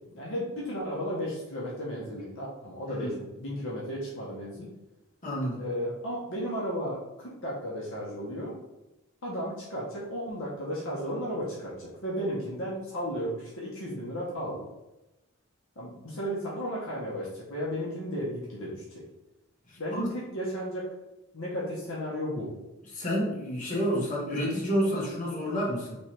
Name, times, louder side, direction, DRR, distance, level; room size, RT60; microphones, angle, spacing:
voice 1, 0.1-4.7 5.6-8.5 9.2-14.6 15.8-19.0 19.8-20.9 21.3-22.5, equal, 65° left, -5 dB, 1.0 m, -34 dB
voice 2, 2.9-3.2 5.2-5.6 19.7-20.1 22.9-26.0, equal, 35° left, -5 dB, 1.5 m, -29 dB
3.4 x 3.1 x 4.4 m, 0.97 s
head